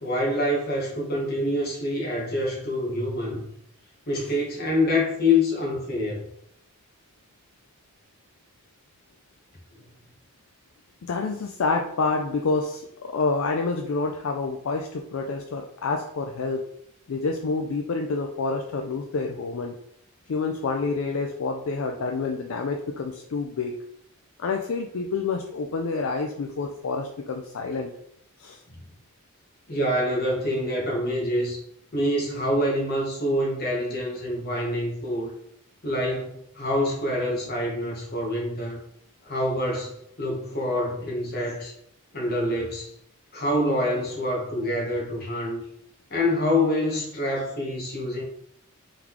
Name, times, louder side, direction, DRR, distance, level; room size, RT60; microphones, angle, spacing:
voice 1, 0.0-3.5 4.1-6.2 28.7-28.8 29.7-31.6 31.9-35.3 35.8-38.8 39.2-41.7 42.1-42.9 43.3-45.6 46.1-48.2, left 1 dB, 45° left, -1 dB, 1.1 m, -26 dB
voice 2, 11.1-16.6 17.1-19.7 20.3-23.8 24.4-27.9 28.4-28.6, left 4 dB, 65° left, 3 dB, 0.4 m, -28 dB
3.8 x 3.6 x 3.0 m, 0.72 s
head